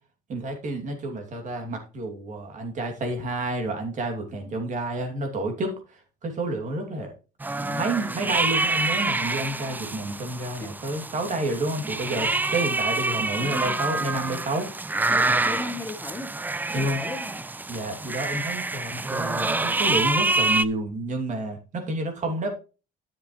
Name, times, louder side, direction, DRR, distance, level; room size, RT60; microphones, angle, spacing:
voice 1, 0.3-7.1 7.6-15.0 15.3-15.4 16.7-17.0 17.7-22.5, right 2 dB, 45° right, 4 dB, 2.7 m, -30 dB
sound 1, 7.4-20.6, right 2 dB, 10° right, 0.4 m, -27 dB
voice 2, 13.4-13.8 15.1-16.3 16.8-17.4, left 2 dB, 10° left, 4 dB, 1.2 m, -35 dB
10.0 x 7.4 x 3.2 m, 0.33 s
cardioid pair, 110°, 17 cm